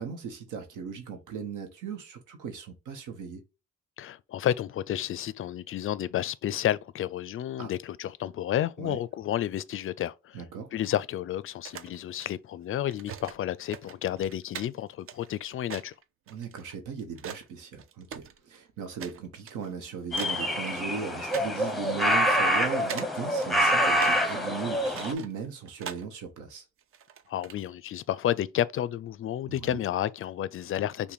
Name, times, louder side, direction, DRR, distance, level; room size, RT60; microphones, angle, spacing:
voice 1, 0.0-3.4 7.6-7.7 8.8-9.0 10.3-10.7 16.3-26.6 29.5-29.8, right 6 dB, 85° right, 0.9 m, -37 dB
voice 2, 4.0-10.4 10.7-15.9 27.3-31.1, left 11 dB, 45° left, 0.4 m, -31 dB
sound 1, 11.5-12.3 12.9-13.4 13.7-17.5 17.7-18.6 19.0-19.2 19.5-19.7 20.1-21.0 21.3-21.5 21.8-21.9 22.6-23.1 23.4-24.2 24.6-26.1 26.8-27.6, right 8 dB, 45° right, 0.5 m, -41 dB
sound 2, 20.1-25.1, equal, ahead, 0.7 m, -26 dB
5.7 x 2.2 x 4.0 m
cardioid pair, 90°, 30 cm